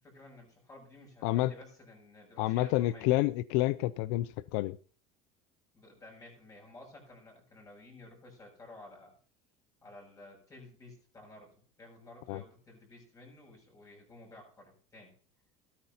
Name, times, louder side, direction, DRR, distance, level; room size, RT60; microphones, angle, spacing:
voice 1, 0.0-3.0 5.7-9.1 9.8-15.1, left 2 dB, 20° left, 0 dB, 6.8 m, -53 dB
voice 2, 1.2-1.5 2.4-4.8 12.3-12.4, left 16 dB, 75° left, 18 dB, 0.4 m, -29 dB
14.5 x 13.0 x 2.8 m, 0.42 s
cardioid pair, 140°, 17 cm